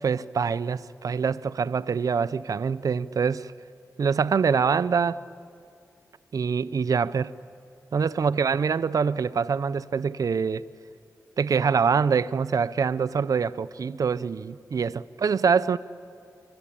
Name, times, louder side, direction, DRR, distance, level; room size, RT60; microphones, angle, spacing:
voice 1, 0.0-3.5 4.0-5.2 6.3-7.3 7.9-10.6 11.4-15.8, right 6 dB, 65° right, 0.6 m, -25 dB
25.0 x 25.0 x 8.8 m
cardioid pair, 65°, 7 cm